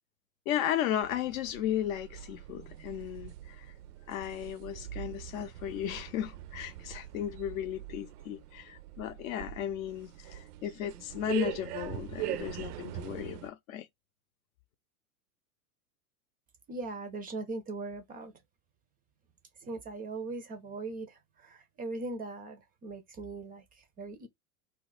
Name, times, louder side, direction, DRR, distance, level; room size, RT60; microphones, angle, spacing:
voice 1, 0.5-3.7 4.1-13.9, left 11 dB, 60° left, 0.6 m, -35 dB
sound 1, 1.0-13.5, right 14 dB, 75° right, 0.5 m, -42 dB
voice 2, 16.7-18.3 19.6-24.3, right 3 dB, 20° right, 0.4 m, -40 dB
2.3 x 2.1 x 3.8 m
hypercardioid pair, 100°, 46 cm